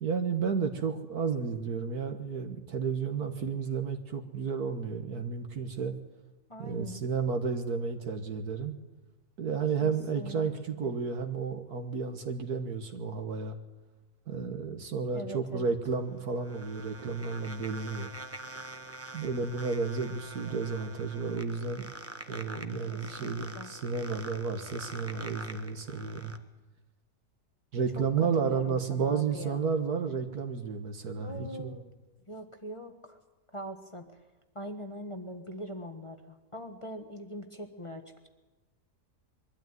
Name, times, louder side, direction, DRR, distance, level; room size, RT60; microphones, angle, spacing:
voice 1, 0.0-6.0 6.6-8.7 9.4-13.6 14.3-18.1 19.1-21.9 22.3-26.3 27.7-31.7, right 5 dB, 65° right, 5 dB, 1.8 m, -32 dB
voice 2, 6.5-7.0 9.8-10.5 10.8-11.0 15.1-15.7 22.9-23.7 27.9-29.7 31.2-31.9 32.3-33.2 33.5-34.2 34.5-38.3, equal, 20° left, 4 dB, 1.2 m, -42 dB
sound 1, 15.9-26.4, right 2 dB, 10° right, 0.8 m, -45 dB
22.5 x 13.0 x 9.3 m, 1.2 s
omnidirectional pair, 1.8 m